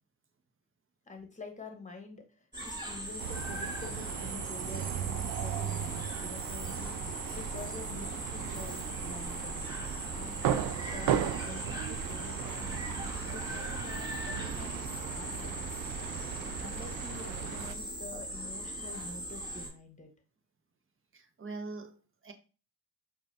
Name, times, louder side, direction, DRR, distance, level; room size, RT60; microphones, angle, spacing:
voice 1, 1.1-2.2 2.6-9.6 10.1-12.8 13.3-20.1, left 3 dB, 20° left, 1.2 m, -47 dB
sound 1, 2.5-19.7, right 1 dB, 10° right, 1.5 m, -40 dB
sound 2, 3.2-17.8, right 10 dB, 60° right, 0.5 m, -36 dB
voice 2, 21.1-22.3, right 3 dB, 35° right, 0.8 m, -43 dB
4.9 x 2.4 x 2.6 m
hypercardioid pair, 45°, 39 cm